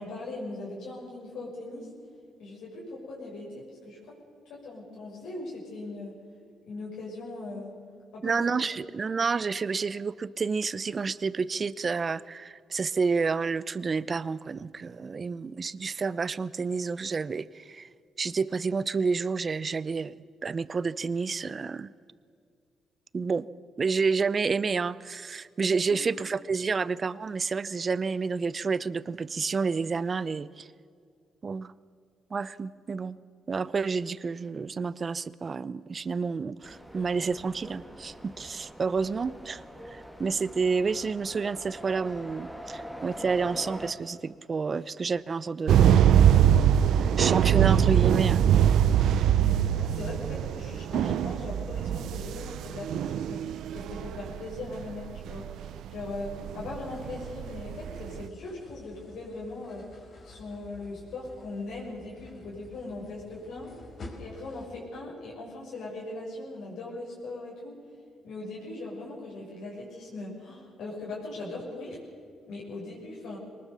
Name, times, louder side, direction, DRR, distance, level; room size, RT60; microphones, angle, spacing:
voice 1, 0.0-1.9 2.4-4.1 4.5-6.1 6.7-7.7 8.1-8.4 25.9-26.0 49.4-59.8 60.2-63.7 64.2-67.7 68.2-72.0 72.5-73.4, left 2 dB, 75° left, -4 dB, 7.0 m, -39 dB
voice 2, 8.2-17.9 18.2-20.2 20.4-21.9 23.1-23.5 23.8-30.7 31.4-31.7 32.3-33.2 33.5-39.6 39.9-45.9 46.9-48.4, right 5 dB, 35° right, 18 dB, 0.7 m, -29 dB
sound 1, 36.6-43.9, equal, 5° left, 2.5 m, -44 dB
sound 2, 45.7-58.3, right 10 dB, 75° right, 0.6 m, -23 dB
sound 3, 56.9-64.7, left 2 dB, 50° left, 4.5 m, -49 dB
23.0 x 19.5 x 7.0 m, 2.3 s
cardioid pair, 90°, 0 cm